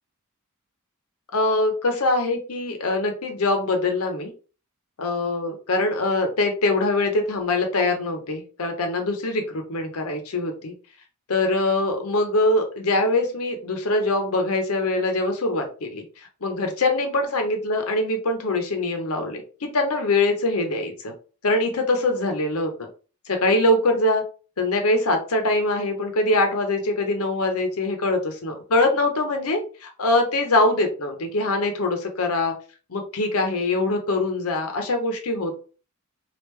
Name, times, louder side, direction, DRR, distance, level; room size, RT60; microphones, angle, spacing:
voice 1, 1.3-4.3 5.0-10.7 11.3-16.0 16.4-21.1 21.4-22.9 23.3-24.2 24.6-32.5 32.9-35.5, left 2 dB, 85° left, 4 dB, 0.8 m, -23 dB
3.5 x 2.5 x 3.2 m, 0.36 s
head